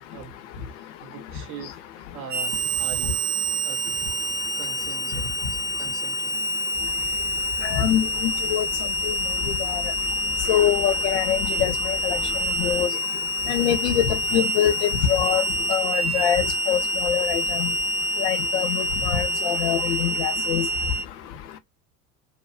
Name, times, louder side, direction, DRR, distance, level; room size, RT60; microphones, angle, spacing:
voice 1, 0.7-3.3 3.6-3.8 4.5-6.4, right 9 dB, 30° right, 0.4 m, -42 dB
Harmonica, 2.3-21.0, equal, 65° right, 0.9 m, -27 dB
sound 1, 6.7-12.9, left 5 dB, 25° left, 0.8 m, -41 dB
voice 2, 7.7-8.7 9.1-9.2 9.7-9.8 10.5-12.2 12.6-12.9 13.5-14.0 14.3-14.7 15.1-15.4 15.7-17.7 18.2-18.7 19.1-20.7, left 10 dB, 50° left, 0.6 m, -24 dB
2.5 x 2.3 x 2.4 m
figure-of-eight pair, 80°, 47 cm